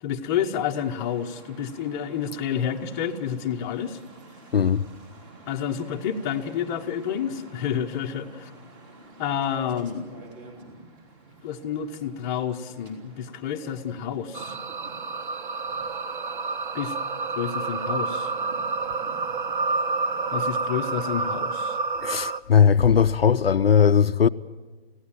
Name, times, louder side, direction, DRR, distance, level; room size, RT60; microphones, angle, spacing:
voice 1, 0.0-4.0 5.5-8.5 9.2-10.2 11.4-14.5 16.7-16.9 17.4-18.3 20.3-21.8, left 8 dB, 20° left, 1.0 m, -29 dB
sound 1, 0.8-20.5, right 2 dB, 25° right, 3.6 m, -49 dB
voice 2, 4.5-4.8 22.0-24.3, left 7 dB, 65° left, 0.7 m, -18 dB
sound 2, 14.3-22.4, right 3 dB, 50° right, 0.9 m, -29 dB
25.5 x 16.5 x 7.6 m
figure-of-eight pair, 140°, 32 cm